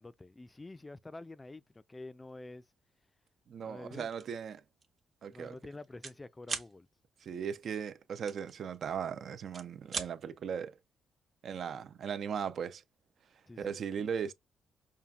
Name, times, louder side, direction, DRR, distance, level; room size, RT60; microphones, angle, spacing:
voice 1, 0.0-1.6 1.9-2.6 3.6-4.1 5.3-6.9 13.5-13.9, left 2 dB, 20° left, 0.4 m, -48 dB
voice 2, 3.5-4.6 5.2-5.6 7.2-10.8 11.4-12.8 13.6-14.3, right 7 dB, 60° right, 0.5 m, -38 dB
sound 1, 4.1-4.4 4.8-5.0 5.3-6.2 6.4-6.7 8.3-9.1 9.4-10.1, right 5 dB, 45° right, 0.8 m, -39 dB
5.4 x 2.4 x 2.3 m
cardioid pair, 90°, 0 cm